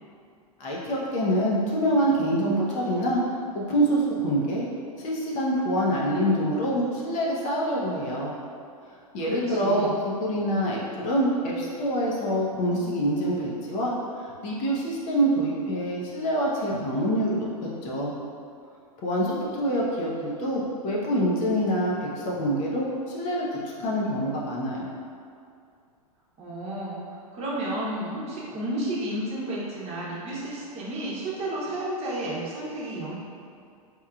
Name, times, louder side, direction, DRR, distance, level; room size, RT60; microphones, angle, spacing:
voice 1, 0.6-3.2 3.5-4.6 5.0-8.4 9.1-13.9 14.2-18.1 19.0-24.9, equal, 40° left, -4 dB, 0.8 m, -26 dB
voice 2, 9.3-10.0 26.4-33.2, right 1 dB, 35° right, -6 dB, 1.0 m, -32 dB
4.5 x 3.0 x 2.4 m, 2.4 s
hypercardioid pair, 100°, 19 cm